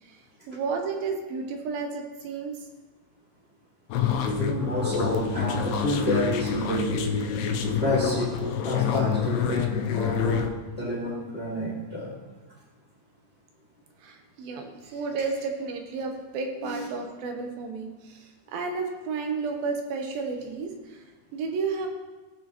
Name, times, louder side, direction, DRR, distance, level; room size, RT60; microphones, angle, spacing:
voice 1, 0.0-2.7 14.0-21.9, right 4 dB, 75° right, 3 dB, 2.5 m, -32 dB
sound 1, 3.9-10.5, left 6 dB, 85° left, 2.7 m, -27 dB
voice 2, 4.3-7.0 7.8-10.5 10.8-12.1 16.6-16.9, left 1 dB, 35° left, -6 dB, 0.9 m, -29 dB
18.5 x 6.2 x 3.0 m, 1.2 s
omnidirectional pair, 4.6 m